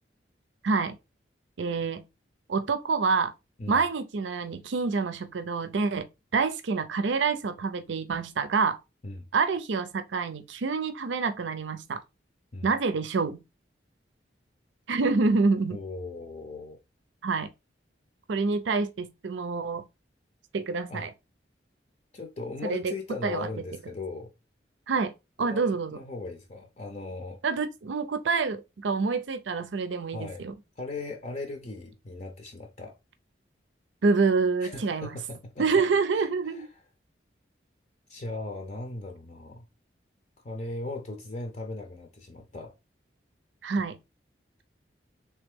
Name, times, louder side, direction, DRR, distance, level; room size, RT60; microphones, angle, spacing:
voice 1, 0.6-1.0 1.6-2.0 2.5-3.3 3.7-8.8 9.3-12.0 12.6-13.4 14.9-15.8 17.2-17.5 18.3-19.8 20.5-21.1 22.6-22.9 23.2-23.5 24.9-25.1 25.4-26.0 27.4-30.5 34.0-35.1 35.6-36.7 43.6-44.0, right 4 dB, 85° right, 0.5 m, -27 dB
voice 2, 15.7-16.8 20.9-21.1 22.1-24.3 25.4-27.4 30.1-30.5 30.8-33.0 34.6-35.6 36.1-36.7 38.1-39.7 40.4-42.7, left 2 dB, 40° left, 0.5 m, -38 dB
3.3 x 2.9 x 3.5 m
head